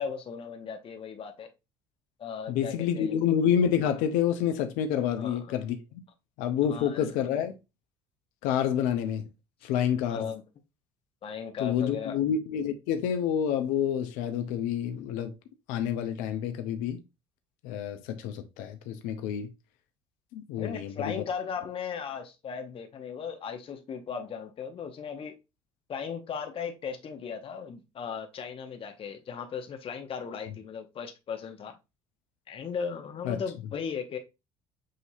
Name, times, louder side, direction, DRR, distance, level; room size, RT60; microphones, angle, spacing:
voice 1, 0.0-1.5 2.2-3.3 5.2-5.6 6.6-7.1 10.0-10.4 11.2-12.2 20.6-25.4 25.9-31.7 32.5-34.2, left 6 dB, 40° left, 0.8 m, -37 dB
voice 2, 2.5-6.0 6.4-7.5 8.4-9.2 9.6-10.3 11.6-15.3 15.7-17.0 17.6-19.5 20.3-21.1 33.3-33.4, left 9 dB, 75° left, 0.6 m, -28 dB
6.4 x 2.7 x 2.6 m
hypercardioid pair, 70°, 14 cm